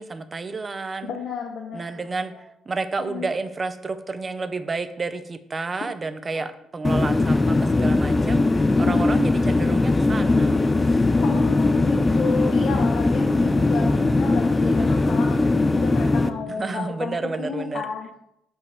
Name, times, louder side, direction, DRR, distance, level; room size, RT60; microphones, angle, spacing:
voice 1, 0.0-1.1 1.7-2.3 2.7-10.7 13.4-14.1 16.6-17.8, right 3 dB, 30° right, 11 dB, 0.6 m, -30 dB
voice 2, 1.1-2.4 3.0-3.3 8.8-9.2 11.2-18.1, left 5 dB, 70° left, 1 dB, 0.9 m, -32 dB
sound 1, 6.8-16.3, left 2 dB, 20° left, 0.4 m, -20 dB
8.2 x 4.5 x 3.5 m, 0.79 s
cardioid pair, 90°, 0 cm